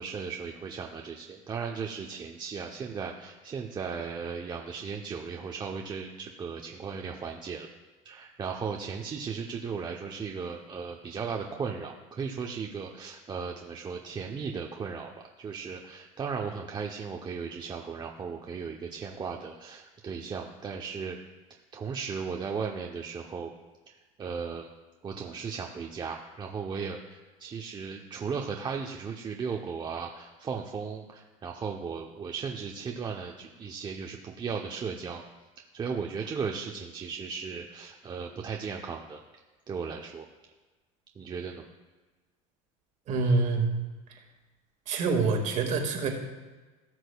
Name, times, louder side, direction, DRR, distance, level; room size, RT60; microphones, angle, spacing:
voice 1, 0.0-7.7 8.0-15.1 15.4-21.2 21.7-23.5 23.9-24.7 25.0-35.2 35.6-39.2 39.7-40.3 41.2-41.6, right 5 dB, 25° right, 1 dB, 0.8 m, -36 dB
voice 2, 43.1-43.7 44.9-46.1, right 4 dB, 45° right, 3 dB, 1.9 m, -26 dB
17.5 x 6.2 x 2.3 m, 1.3 s
supercardioid pair, 110°, 17 cm